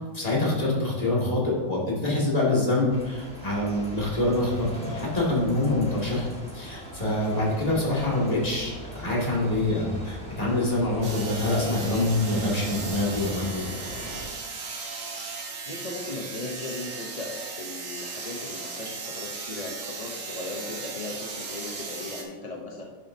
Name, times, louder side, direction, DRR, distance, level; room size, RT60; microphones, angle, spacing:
voice 1, 0.1-6.3 6.5-13.7, left 2 dB, 20° left, -6 dB, 2.2 m, -25 dB
sound 1, 2.9-14.3, equal, 5° left, 1.5 m, -39 dB
sound 2, 11.0-22.2, right 4 dB, 50° right, 1.4 m, -37 dB
voice 2, 15.6-22.8, left 2 dB, 50° left, 0 dB, 0.4 m, -37 dB
10.5 x 6.4 x 2.7 m, 1.4 s
omnidirectional pair, 1.9 m